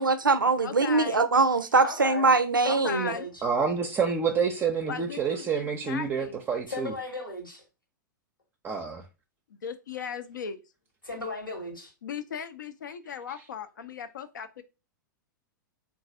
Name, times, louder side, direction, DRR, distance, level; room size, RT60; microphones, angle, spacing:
voice 1, 0.0-3.1, right 3 dB, 85° right, 0.4 m, -22 dB
voice 2, 0.6-1.3 2.6-3.3 4.9-6.4 9.5-10.6 12.0-14.6, left 6 dB, 70° left, 0.6 m, -37 dB
voice 3, 1.8-2.3 2.6-3.3 6.7-7.6 11.0-11.9, left 3 dB, 85° left, 1.4 m, -36 dB
voice 4, 3.4-6.9 8.6-9.0, right 6 dB, 20° right, 0.5 m, -28 dB
3.9 x 2.5 x 4.7 m
figure-of-eight pair, 100°, 11 cm